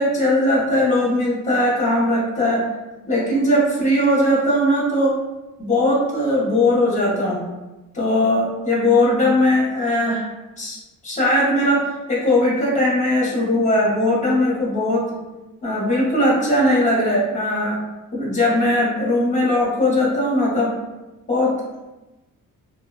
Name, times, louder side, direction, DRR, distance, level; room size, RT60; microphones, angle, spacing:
voice 1, 0.0-2.7 3.0-5.1 5.6-7.4 7.9-10.3 10.6-10.8 11.0-15.1 15.6-17.8 18.1-20.7 21.3-21.5, left 1 dB, 20° left, -5 dB, 0.7 m, -19 dB
2.6 x 2.1 x 2.3 m, 1.0 s
wide cardioid pair, 165°, 34 cm